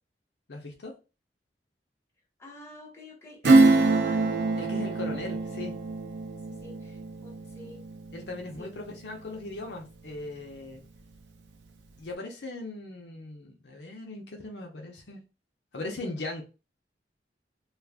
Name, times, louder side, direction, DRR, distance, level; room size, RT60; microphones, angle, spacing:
voice 1, 0.5-0.9 4.6-5.7 8.1-10.8 12.0-15.2 15.7-16.4, left 2 dB, 70° left, 1 dB, 0.7 m, -39 dB
voice 2, 2.4-4.3 6.5-7.8 8.6-8.7, equal, 15° left, -4 dB, 1.0 m, -47 dB
Acoustic guitar / Strum, 3.4-9.6 10.0-10.1, right 3 dB, 85° right, 0.5 m, -25 dB
2.4 x 2.4 x 3.4 m, 0.31 s
head